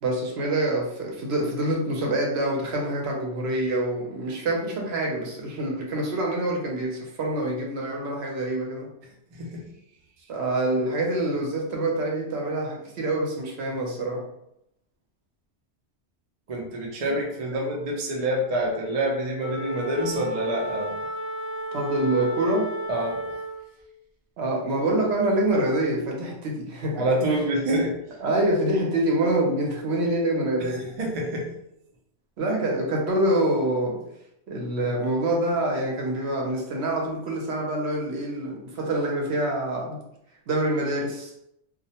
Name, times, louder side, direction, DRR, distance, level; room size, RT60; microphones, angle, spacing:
voice 1, 0.0-8.9 10.3-14.2 17.5-17.6 21.7-22.7 24.4-27.1 28.2-30.8 32.4-34.0 34.5-40.0 40.5-41.3, right 1 dB, 70° right, -1 dB, 0.9 m, -26 dB
voice 2, 9.3-9.7 16.5-21.0 22.9-23.3 26.9-28.0 30.6-31.5, right 1 dB, 50° right, -1 dB, 0.5 m, -27 dB
Wind instrument woodwind instrument, 19.4-23.8, right 1 dB, 65° left, 0.9 m, -33 dB
2.3 x 2.0 x 2.7 m, 0.80 s
omnidirectional pair, 1.2 m